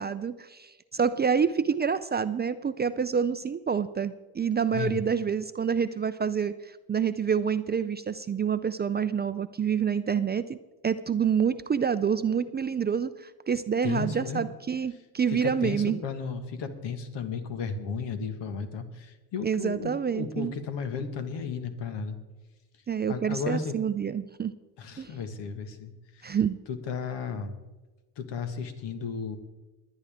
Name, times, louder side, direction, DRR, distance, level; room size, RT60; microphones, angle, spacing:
voice 1, 0.0-10.6 10.8-16.0 19.4-20.6 22.9-24.5 25.0-25.1 26.2-26.6, right 7 dB, 25° right, 12 dB, 0.4 m, -27 dB
voice 2, 13.8-14.4 15.3-22.2 23.1-23.7 24.8-26.4 26.7-27.5 28.2-29.4, left 5 dB, 70° left, 8 dB, 1.7 m, -34 dB
21.0 x 9.9 x 3.6 m, 1.2 s
supercardioid pair, 70°, 44 cm